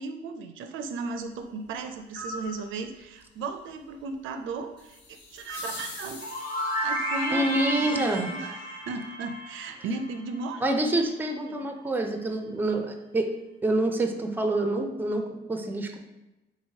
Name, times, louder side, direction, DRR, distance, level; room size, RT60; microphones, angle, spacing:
voice 1, 0.0-6.2 6.8-10.6 11.5-11.7, right 4 dB, 80° right, 7 dB, 0.4 m, -36 dB
sound 1, 2.1-2.5 5.5-5.9, equal, 10° left, 1.0 m, -38 dB
sound 2, 4.8-7.0, left 4 dB, 65° left, 0.6 m, -43 dB
sound 3, 5.7-10.4, equal, 45° left, 1.3 m, -33 dB
voice 2, 7.3-8.3 10.6-13.3 13.6-16.0, right 2 dB, 10° right, 5 dB, 0.4 m, -27 dB
3.8 x 3.0 x 2.7 m, 0.98 s
cardioid pair, 90°, 20 cm